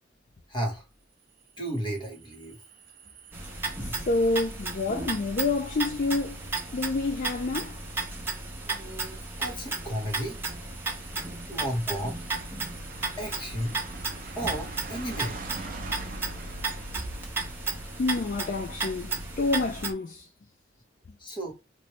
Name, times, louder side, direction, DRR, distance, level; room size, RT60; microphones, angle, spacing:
voice 1, 0.5-0.8 1.6-2.6 8.6-10.4 11.5-12.2 13.2-13.8 14.3-15.4 21.2-21.5, equal, 25° left, 1.3 m, -33 dB
sound 1, 1.4-19.9, right 3 dB, 45° right, 0.6 m, -46 dB
sound 2, 3.3-19.9, right 3 dB, 10° right, 1.0 m, -34 dB
voice 2, 4.1-7.8 18.0-20.3, left 3 dB, 45° left, 0.4 m, -28 dB
3.0 x 2.7 x 3.0 m
head